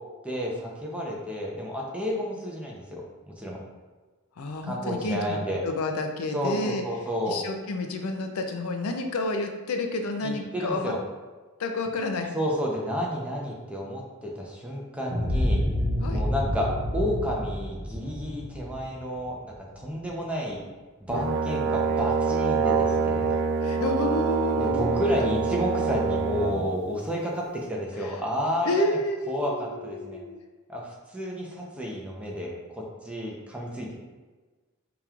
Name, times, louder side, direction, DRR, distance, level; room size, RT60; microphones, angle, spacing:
voice 1, 0.2-3.6 4.6-5.6 6.3-7.4 10.2-11.0 12.3-15.6 16.1-20.6 21.1-23.4 24.6-28.9 29.3-30.2 30.7-33.9, equal, 5° right, -3 dB, 0.6 m, -31 dB
voice 2, 4.4-5.4 5.6-6.8 7.3-10.9 11.6-12.3 16.0-16.2 23.6-25.3 28.0-28.1 28.6-30.4, left 2 dB, 85° left, 4 dB, 0.5 m, -30 dB
sound 1, 15.1-19.8, left 1 dB, 40° right, 0.9 m, -28 dB
Brass instrument, 21.1-26.6, right 5 dB, 60° right, 0.5 m, -25 dB
5.1 x 2.9 x 2.4 m, 1.3 s
head